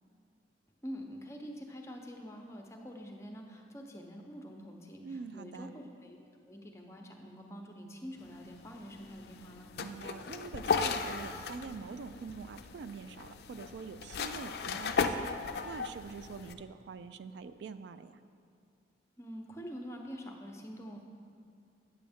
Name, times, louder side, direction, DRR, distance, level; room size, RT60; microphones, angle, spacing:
voice 1, 0.8-6.2 6.4-9.7 19.2-21.0, equal, 15° left, 2 dB, 0.7 m, -46 dB
voice 2, 5.0-5.7 9.8-18.2, right 5 dB, 75° right, 12 dB, 0.3 m, -45 dB
sound 1, 8.2-16.5, left 5 dB, 60° left, 0.4 m, -36 dB
8.7 x 7.5 x 3.5 m, 2.4 s
head